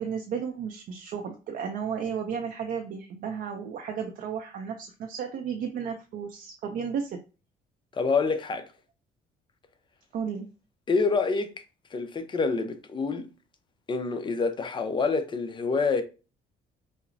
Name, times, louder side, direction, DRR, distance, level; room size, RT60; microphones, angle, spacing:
voice 1, 0.0-7.2 10.1-10.5, right 7 dB, 60° right, 0.5 m, -33 dB
voice 2, 7.9-8.7 10.9-11.5 11.9-13.3 13.9-16.0, left 4 dB, 30° left, 0.6 m, -27 dB
5.7 x 2.0 x 2.6 m
cardioid pair, 110°, 17 cm